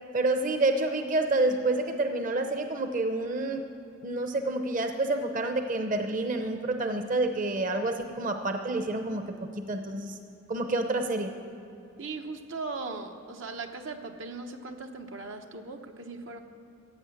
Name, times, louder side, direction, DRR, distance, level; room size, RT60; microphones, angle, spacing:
voice 1, 0.1-3.7 4.0-9.4 9.7-10.2 10.5-11.3, right 2 dB, 45° right, 6 dB, 0.8 m, -28 dB
voice 2, 12.0-16.4, right 3 dB, 80° right, 4 dB, 1.0 m, -38 dB
15.0 x 8.7 x 7.8 m, 2.7 s
head